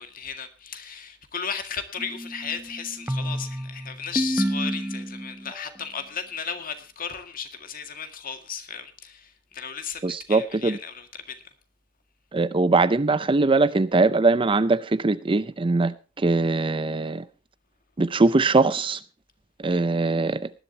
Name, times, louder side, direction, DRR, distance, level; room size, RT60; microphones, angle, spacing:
voice 1, 0.0-11.4, left 6 dB, 45° left, 2.0 m, -35 dB
sound 1, 2.0-5.6, right 1 dB, 10° right, 0.9 m, -30 dB
voice 2, 10.0-10.8 12.3-17.2 18.0-19.0 19.6-20.4, right 3 dB, 25° right, 0.5 m, -21 dB
19.0 x 11.0 x 2.8 m
head